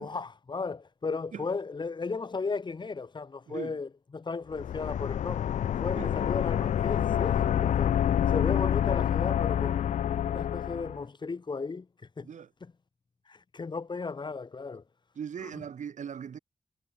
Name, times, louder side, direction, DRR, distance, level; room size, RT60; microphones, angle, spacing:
voice 1, 0.0-5.5 5.8-8.0 8.3-9.9 10.3-11.9 12.2-12.3 12.6-12.7 13.3-14.8 15.4-15.7, left 4 dB, 40° left, 1.9 m, -35 dB
sound 1, 4.5-11.0, left 10 dB, 85° left, 0.4 m, -27 dB
voice 2, 15.2-16.4, right 7 dB, 85° right, 1.9 m, -39 dB
wide cardioid pair, 120°, 12 cm